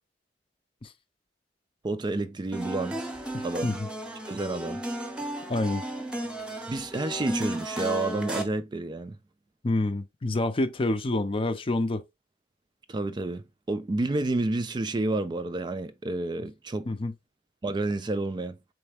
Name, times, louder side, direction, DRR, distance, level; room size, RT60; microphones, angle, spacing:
voice 1, 1.8-3.0 3.4-3.8 4.3-4.8 6.7-9.2 12.9-16.9 17.6-18.6, right 2 dB, 25° right, 0.4 m, -30 dB
sound 1, 2.5-8.4, right 1 dB, 5° right, 0.8 m, -34 dB
voice 2, 3.3-3.9 5.5-5.8 9.6-12.0 16.9-17.1, left 2 dB, 30° left, 0.5 m, -27 dB
4.3 x 3.2 x 3.4 m
head